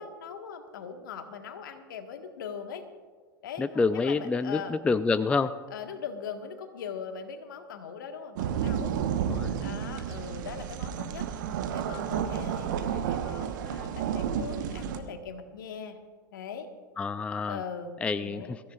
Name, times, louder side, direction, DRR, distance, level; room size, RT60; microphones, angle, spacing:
voice 1, 0.0-2.8 3.4-4.8 5.7-9.0 9.6-11.3 11.7-16.0 16.3-16.7 17.5-18.6, left 6 dB, 65° left, 6 dB, 1.5 m, -40 dB
voice 2, 3.6-5.5 9.3-9.5 17.0-17.6 18.0-18.6, left 4 dB, 10° left, 14 dB, 0.4 m, -27 dB
sound 1, 8.3-15.0, right 8 dB, 60° right, 1.1 m, -31 dB
23.5 x 14.5 x 2.4 m, 1.5 s
figure-of-eight pair, 85°, 12 cm